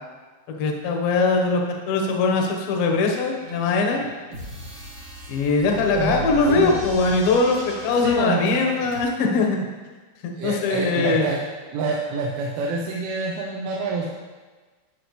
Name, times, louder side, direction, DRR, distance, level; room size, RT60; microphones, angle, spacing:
voice 1, 0.5-4.0 5.3-9.6 10.2-11.3, left 3 dB, 70° left, 2 dB, 2.3 m, -21 dB
sound 1, 3.4-9.0, right 2 dB, 50° right, 1.8 m, -37 dB
voice 2, 5.9-6.8 8.0-8.4 10.4-11.4 11.7-14.1, right 4 dB, 85° right, -3 dB, 3.4 m, -27 dB
17.5 x 6.1 x 3.2 m, 1.3 s
omnidirectional pair, 5.5 m